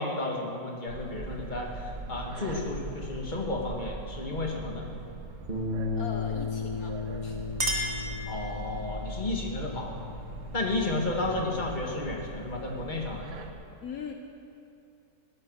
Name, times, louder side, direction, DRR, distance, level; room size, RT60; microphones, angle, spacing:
voice 1, 0.0-4.9 8.3-10.0 10.5-13.3, left 2 dB, 30° left, 0 dB, 2.2 m, -32 dB
sound 1, 0.9-13.5, right 3 dB, 70° right, 1.7 m, -41 dB
Bass guitar, 5.5-11.7, left 5 dB, 30° right, 2.7 m, -36 dB
voice 2, 6.0-7.0 7.2-7.4 13.8-14.1, left 6 dB, 70° left, 4 dB, 1.4 m, -40 dB
Chink clink, 7.0-8.9, equal, 45° right, 2.3 m, -34 dB
17.0 x 12.5 x 6.4 m, 2.7 s
omnidirectional pair, 1.6 m